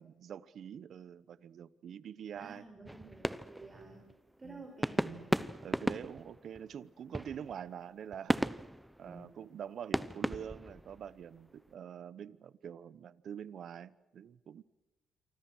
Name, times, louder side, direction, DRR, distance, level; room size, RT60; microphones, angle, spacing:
voice 1, 0.0-2.6 4.4-4.6 5.6-8.4 9.0-14.6, right 8 dB, 60° right, 18 dB, 0.9 m, -45 dB
voice 2, 2.3-4.1 4.4-5.3 9.0-9.2, right 3 dB, 25° right, 3 dB, 4.7 m, -50 dB
sound 1, 2.8-4.4 4.8-9.6 9.9-11.5, equal, 5° right, 0.8 m, -36 dB
28.0 x 25.0 x 6.3 m, 1.1 s
cardioid pair, 90°, 0 cm